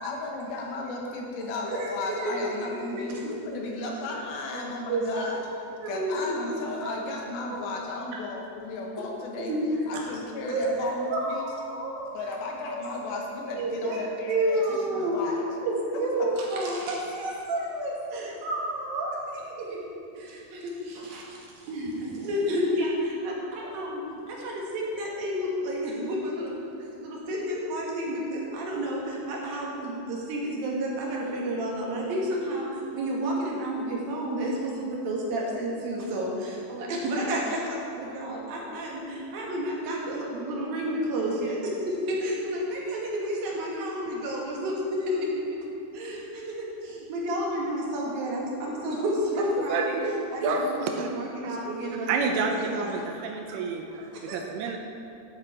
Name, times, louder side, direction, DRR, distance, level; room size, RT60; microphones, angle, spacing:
voice 1, 0.0-9.5 9.9-11.5 12.1-14.6 14.9-15.4 16.2-16.3, left 2 dB, 75° left, 0 dB, 2.6 m, -34 dB
voice 2, 2.2-2.5 2.9-3.0 4.5-5.3 5.8-6.4 7.5-7.6 9.5-9.9 10.5-12.0 12.7-12.8 13.1-13.2 13.5-14.0 14.3-15.3 15.6-19.8 20.2-24.0 24.3-26.5 26.8-45.3 45.9-53.0 54.1-54.4, right 1 dB, 65° right, -3 dB, 3.0 m, -30 dB
voice 3, 49.4-51.1 51.4-51.6 52.1-54.8, right 4 dB, 85° right, 3 dB, 2.6 m, -29 dB
12.5 x 7.1 x 4.3 m, 2.6 s
omnidirectional pair, 4.8 m